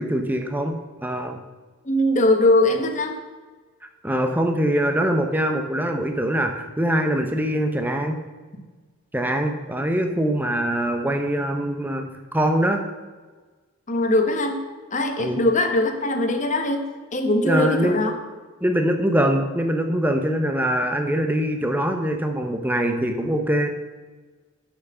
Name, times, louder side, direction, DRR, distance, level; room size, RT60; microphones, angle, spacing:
voice 1, 0.0-1.4 4.0-8.2 9.1-12.8 15.2-15.4 17.4-18.0 18.6-23.7, equal, 10° right, 5 dB, 0.7 m, -23 dB
voice 2, 1.8-3.1 13.9-14.6 14.9-16.8 17.1-18.1, left 1 dB, 35° left, 5 dB, 1.1 m, -21 dB
10.0 x 5.7 x 6.7 m, 1.4 s
head